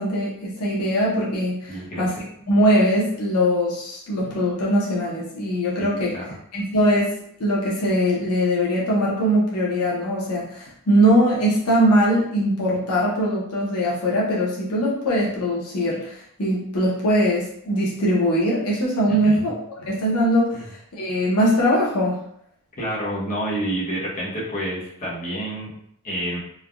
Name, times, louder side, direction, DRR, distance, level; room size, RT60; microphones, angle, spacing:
voice 1, 0.0-2.1 2.5-6.2 6.5-16.1 16.4-19.5 19.8-20.6 21.0-22.2, equal, 85° left, -5 dB, 0.8 m, -21 dB
voice 2, 1.7-2.1 5.8-6.4 19.1-19.5 20.5-20.6 22.8-25.7 26.0-26.4, right 1 dB, 40° left, -7 dB, 1.0 m, -29 dB
3.3 x 2.2 x 2.4 m, 0.68 s
head